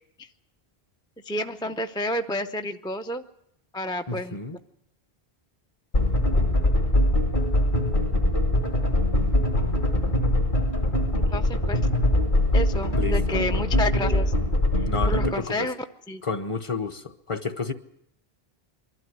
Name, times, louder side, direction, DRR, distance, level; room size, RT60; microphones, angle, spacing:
voice 1, 1.2-3.2 3.7-4.4 11.1-11.8 12.5-14.3 14.8-15.8 16.1-16.2, left 1 dB, 5° left, 6 dB, 0.5 m, -30 dB
voice 2, 4.1-4.6 12.9-13.4 14.9-15.7 16.2-17.7, left 4 dB, 30° left, 10 dB, 1.0 m, -31 dB
sound 1, 5.9-15.3, left 1 dB, 55° left, 2.5 m, -22 dB
23.0 x 12.5 x 9.5 m, 0.80 s
omnidirectional pair, 1.0 m